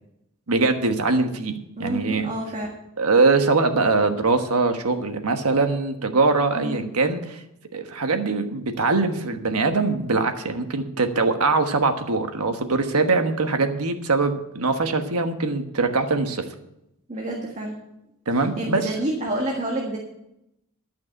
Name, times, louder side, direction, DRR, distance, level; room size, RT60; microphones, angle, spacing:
voice 1, 0.5-1.5 1.8-2.3 3.0-7.4 7.7-16.4 18.3-18.9, right 3 dB, 85° right, 6 dB, 1.3 m, -22 dB
voice 2, 1.8-2.7 6.5-6.8 17.1-17.8 18.6-20.0, right 1 dB, 30° right, -1 dB, 1.7 m, -28 dB
12.0 x 5.9 x 8.7 m, 0.85 s
head